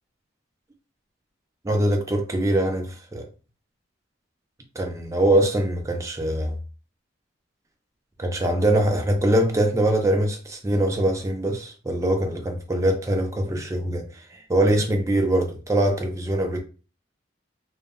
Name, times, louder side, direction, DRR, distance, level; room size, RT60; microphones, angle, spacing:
voice 1, 1.6-3.3 4.8-6.6 8.2-16.6, right 1 dB, 15° right, 0.4 m, -23 dB
2.0 x 2.0 x 3.4 m
head